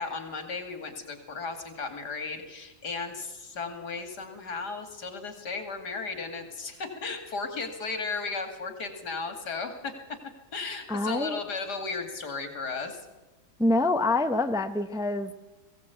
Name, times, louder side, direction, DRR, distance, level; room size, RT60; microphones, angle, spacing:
voice 1, 0.0-9.9 10.5-13.1, left 4 dB, 85° left, 3.0 m, -35 dB
voice 2, 10.9-11.4 13.6-15.3, left 2 dB, 5° right, 0.7 m, -26 dB
21.5 x 16.5 x 8.3 m
omnidirectional pair, 1.7 m